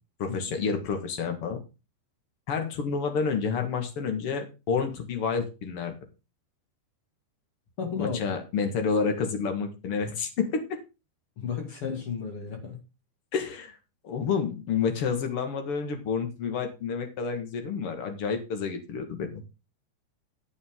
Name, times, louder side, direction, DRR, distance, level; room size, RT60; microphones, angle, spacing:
voice 1, 0.2-1.6 2.5-5.9 8.0-10.8 13.3-13.7 14.0-19.4, left 5 dB, 70° left, 6 dB, 1.3 m, -29 dB
voice 2, 7.8-8.2 11.4-12.8, left 6 dB, 40° left, 4 dB, 2.1 m, -33 dB
12.5 x 8.6 x 3.7 m, 0.29 s
omnidirectional pair, 5.2 m